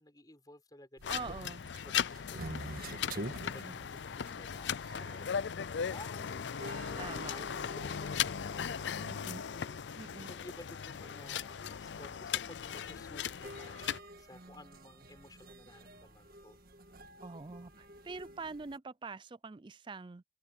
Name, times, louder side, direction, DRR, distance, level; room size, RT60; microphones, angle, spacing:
voice 1, 0.0-1.5 1.9-2.4 2.9-9.1 9.5-13.8 14.2-16.6, left 1 dB, 20° left, 4.5 m, -55 dB
sound 1, 1.0-14.0, left 8 dB, 85° left, 0.5 m, -38 dB
sound 2, 1.0-18.8, right 1 dB, 55° right, 1.9 m, -50 dB
voice 2, 1.1-1.7 3.6-3.8 7.0-7.3 9.0-9.4 9.9-10.3 17.2-20.2, right 4 dB, 25° right, 0.4 m, -44 dB
open air
head